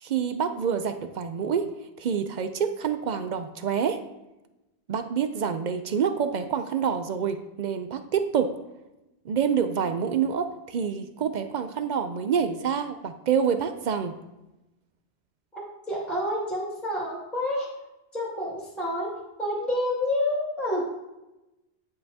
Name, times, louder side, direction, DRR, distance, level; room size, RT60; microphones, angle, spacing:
voice 1, 0.0-1.7 2.0-4.0 4.9-8.6 9.3-14.1, right 7 dB, 55° right, 9 dB, 0.5 m, -27 dB
voice 2, 15.9-17.7 18.1-19.1 19.4-20.9, left 1 dB, ahead, -5 dB, 2.0 m, -28 dB
10.0 x 5.4 x 2.8 m, 0.96 s
omnidirectional pair, 1.1 m